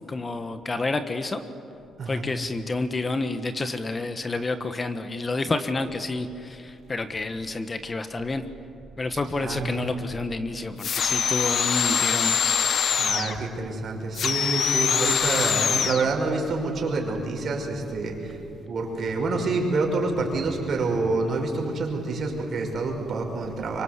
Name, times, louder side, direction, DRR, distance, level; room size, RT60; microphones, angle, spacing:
voice 1, 0.1-1.4 2.1-8.4 9.0-12.3, left 3 dB, 30° left, 9 dB, 1.4 m, -29 dB
voice 2, 9.4-9.9 13.0-18.4 18.7-23.8, right 3 dB, 55° right, 1 dB, 5.8 m, -27 dB
sound 1, 10.8-13.4 14.1-16.1, left 7 dB, 60° left, 1.4 m, -23 dB
24.5 x 24.0 x 8.2 m, 2.8 s
cardioid pair, 90°, 0 cm